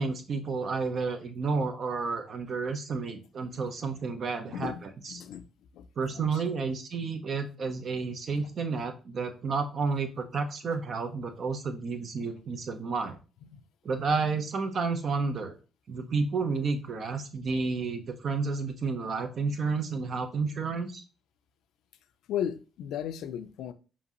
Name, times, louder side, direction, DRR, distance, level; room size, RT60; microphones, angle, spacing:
voice 1, 0.0-4.7 5.0-5.2 6.0-13.2 13.8-15.6 15.9-21.0, right 4 dB, 55° right, 0.8 m, -31 dB
voice 2, 4.5-5.5 5.7-5.9 6.1-6.7 13.5-13.6 22.3-23.7, left 9 dB, 85° left, 0.4 m, -36 dB
5.2 x 2.8 x 3.0 m
cardioid pair, 90°, 0 cm